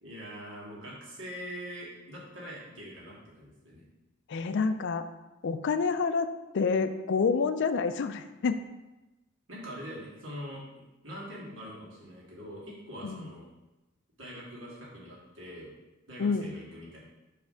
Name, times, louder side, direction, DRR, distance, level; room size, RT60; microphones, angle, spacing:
voice 1, 0.0-3.8 9.5-10.6 11.0-13.4 14.2-15.7 16.1-17.0, equal, 70° right, -5 dB, 2.1 m, -43 dB
voice 2, 4.3-5.1 5.4-6.3 6.5-8.6 13.0-13.3 16.2-16.5, left 5 dB, 60° left, 10 dB, 0.4 m, -28 dB
5.7 x 3.3 x 5.6 m, 1.1 s
head